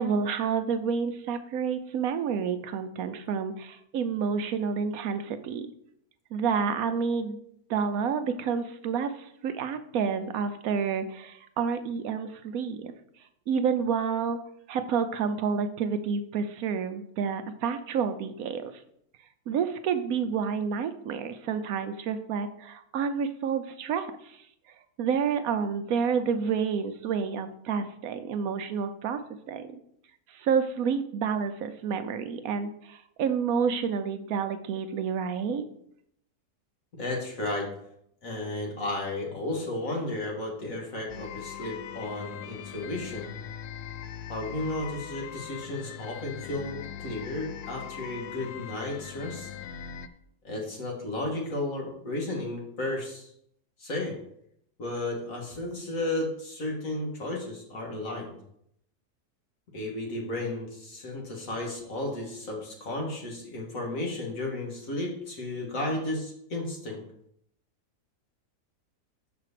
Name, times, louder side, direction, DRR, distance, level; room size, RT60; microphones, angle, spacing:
voice 1, 0.0-5.7 6.3-7.4 7.7-12.9 13.5-14.4 14.7-18.7 19.5-24.4 25.0-29.2 29.5-29.7 30.3-35.6, right 6 dB, 70° right, 9 dB, 1.1 m, -29 dB
voice 2, 36.9-37.7 38.2-43.3 44.3-49.5 50.4-53.3 53.8-54.1 54.8-58.4 59.7-67.0, left 2 dB, 60° left, 0 dB, 2.1 m, -33 dB
sound 1, 41.1-50.1, left 9 dB, 75° left, 0.6 m, -40 dB
6.0 x 4.9 x 6.6 m, 0.72 s
omnidirectional pair, 1.7 m